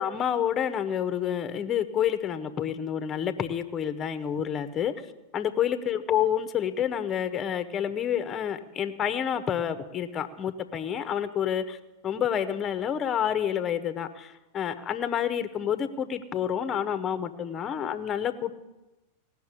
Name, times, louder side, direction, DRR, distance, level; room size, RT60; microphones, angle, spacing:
voice 1, 0.0-4.9 5.3-11.8 12.0-18.5, left 9 dB, 25° left, 10 dB, 1.3 m, -28 dB
18.5 x 6.6 x 10.0 m, 1.0 s
figure-of-eight pair, 90°, 0 cm